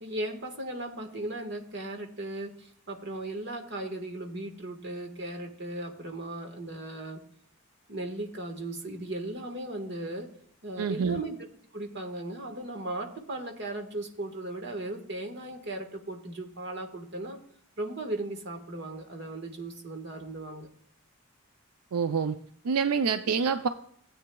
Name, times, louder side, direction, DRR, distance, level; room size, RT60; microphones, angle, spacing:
voice 1, 0.0-7.2 7.9-10.3 10.6-11.4 11.7-17.4 17.8-20.7, right 2 dB, 50° right, 4 dB, 1.5 m, -37 dB
voice 2, 10.8-11.2 21.9-22.4 22.6-23.7, right 6 dB, 90° right, 10 dB, 0.5 m, -26 dB
15.5 x 8.6 x 2.3 m, 0.63 s
head